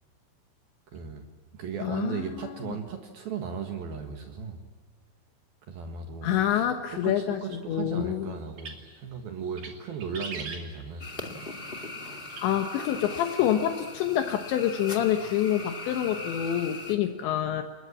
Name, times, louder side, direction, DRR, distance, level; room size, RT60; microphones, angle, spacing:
voice 1, 0.9-1.2 1.5-4.6 5.7-6.6 6.9-11.1, right 6 dB, 60° right, 4 dB, 3.2 m, -36 dB
voice 2, 1.8-2.6 6.2-7.4 7.7-8.3 12.4-17.6, left 11 dB, 75° left, 6 dB, 3.3 m, -27 dB
sound 1, 8.4-9.0 9.4-9.8 10.0-11.1 12.3-12.4, right 4 dB, 45° right, 3.7 m, -39 dB
sound 2, 11.0-17.0, left 2 dB, 30° left, 0.9 m, -39 dB
29.0 x 20.5 x 7.4 m, 1.5 s
omnidirectional pair, 5.3 m